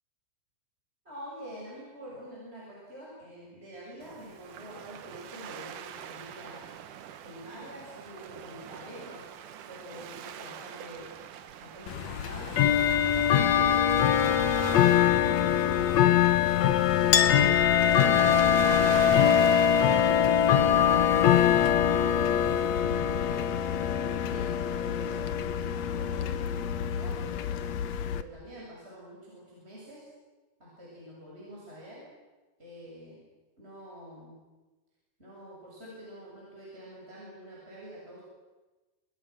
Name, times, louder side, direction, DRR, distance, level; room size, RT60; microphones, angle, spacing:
voice 1, 1.0-6.6 7.2-9.2 9.7-11.1 11.6-16.0 16.5-19.8 20.4-22.5 22.9-25.3 25.7-27.6 28.1-30.0 30.6-32.0 32.6-33.2 33.6-34.4 35.2-38.2, equal, 15° right, -5 dB, 7.9 m, -46 dB
Waves surf, 4.0-22.8, right 9 dB, 65° right, 2.4 m, -42 dB
Bell / Tick-tock, 11.9-28.2, left 10 dB, 85° left, 1.5 m, -24 dB
Chink clink, 17.1-24.2, left 7 dB, 65° left, 2.6 m, -27 dB
29.5 x 26.5 x 6.4 m, 1.2 s
omnidirectional pair, 4.7 m